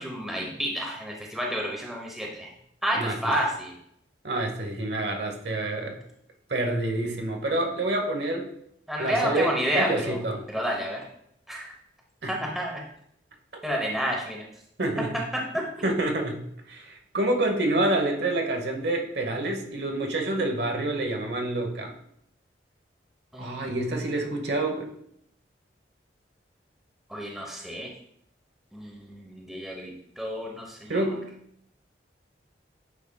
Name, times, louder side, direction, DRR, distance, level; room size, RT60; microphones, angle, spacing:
voice 1, 0.0-2.5 2.8-3.7 8.9-10.2 10.5-11.0 11.5-11.7 12.3-12.8 13.6-14.4 15.5-15.6 23.3-23.7 27.1-27.9 28.7-31.1, equal, ahead, -1 dB, 0.9 m, -30 dB
voice 2, 4.2-6.0 6.5-8.5 9.0-10.4 12.2-12.4 14.8-15.1 15.8-16.4 16.7-21.9 23.4-24.9 30.9-31.2, right 2 dB, 65° right, 2 dB, 1.0 m, -27 dB
8.5 x 5.1 x 2.3 m, 0.71 s
head